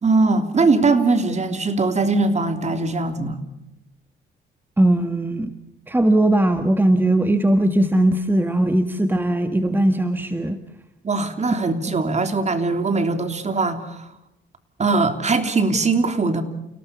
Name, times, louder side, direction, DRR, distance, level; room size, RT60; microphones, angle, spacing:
voice 1, 0.0-3.4 11.0-14.1 14.8-16.4, right 3 dB, 35° right, 7 dB, 3.3 m, -21 dB
voice 2, 4.8-5.5 5.9-10.6, right 1 dB, 10° right, 8 dB, 1.6 m, -19 dB
29.5 x 18.0 x 7.0 m, 0.87 s
cardioid pair, 90°, 20 cm